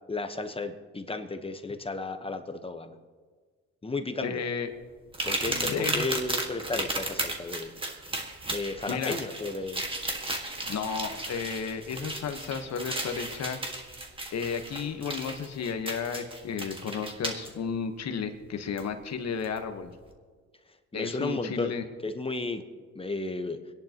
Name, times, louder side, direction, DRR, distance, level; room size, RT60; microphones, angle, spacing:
voice 1, 0.1-2.9 3.8-4.4 5.2-7.7 8.5-9.8 20.9-21.7 22.0-22.6 22.9-23.6, left 3 dB, 20° left, 7 dB, 1.0 m, -33 dB
voice 2, 4.2-4.7 5.5-6.1 8.9-9.2 10.7-13.6 14.3-19.9 20.9-21.8, left 6 dB, 60° left, 6 dB, 1.3 m, -33 dB
sound 1, 5.1-17.5 18.8-18.9 19.4-19.6, right 2 dB, 15° right, 1.7 m, -34 dB
25.0 x 10.5 x 3.0 m, 1.6 s
cardioid pair, 90°, 30 cm